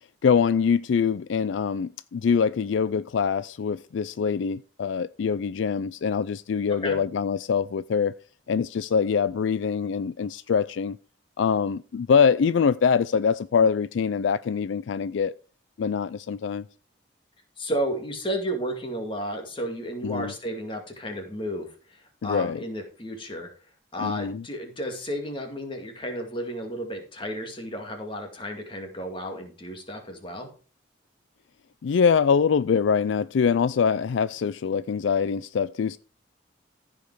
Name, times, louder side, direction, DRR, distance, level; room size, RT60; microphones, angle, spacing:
voice 1, 0.2-8.1 8.5-11.0 11.4-15.3 15.8-16.7 20.0-20.3 22.2-22.6 24.0-24.4 31.8-36.0, left 6 dB, 70° left, 0.4 m, -24 dB
voice 2, 17.6-23.5 23.9-30.5, equal, 25° left, 2.2 m, -32 dB
15.0 x 5.3 x 4.6 m
head